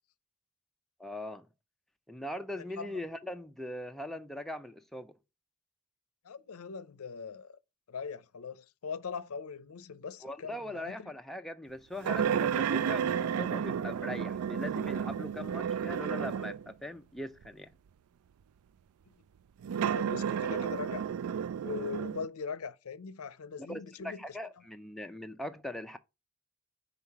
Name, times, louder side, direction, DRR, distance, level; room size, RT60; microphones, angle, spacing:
voice 1, 1.0-1.5 2.1-5.1 10.2-17.7 23.7-26.0, left 1 dB, ahead, 0.4 m, -40 dB
voice 2, 2.5-3.0 6.2-7.6 7.9-11.1 19.8-21.1 21.6-24.2, left 5 dB, 85° left, 0.6 m, -41 dB
sound 1, 12.0-16.7 17.4-17.5 19.6-22.2, right 8 dB, 90° right, 0.3 m, -32 dB
5.7 x 4.0 x 4.5 m
head